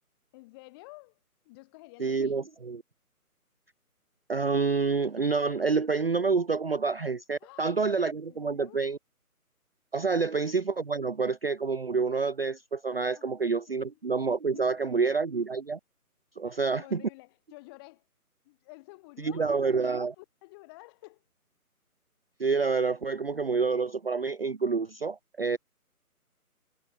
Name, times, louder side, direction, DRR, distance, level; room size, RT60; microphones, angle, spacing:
voice 1, 0.3-1.2 1.4-2.5 7.4-8.9 10.1-10.3 13.1-13.9 14.5-15.2 16.4-18.1 18.4-21.3, left 24 dB, 15° left, 3.9 m, -52 dB
voice 2, 2.0-2.8 4.3-9.0 9.9-15.8 16.4-17.0 19.2-20.1 22.4-25.6, right 4 dB, 40° right, 0.6 m, -28 dB
figure-of-eight pair, 150°, 45 cm